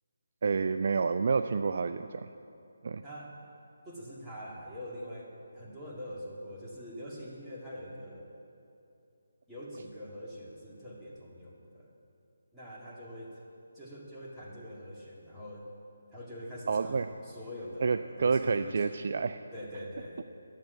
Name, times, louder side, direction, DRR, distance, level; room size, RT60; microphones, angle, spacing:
voice 1, 0.4-2.3 2.8-3.0 16.7-17.1 17.8-19.4, right 5 dB, 45° right, 8 dB, 0.3 m, -29 dB
voice 2, 3.8-8.3 9.5-11.9 12.5-13.3 13.7-15.7 16.1-19.1 19.5-20.2, equal, 5° right, -8 dB, 2.0 m, -44 dB
11.0 x 7.6 x 8.4 m, 2.6 s
figure-of-eight pair, 150°, 0 cm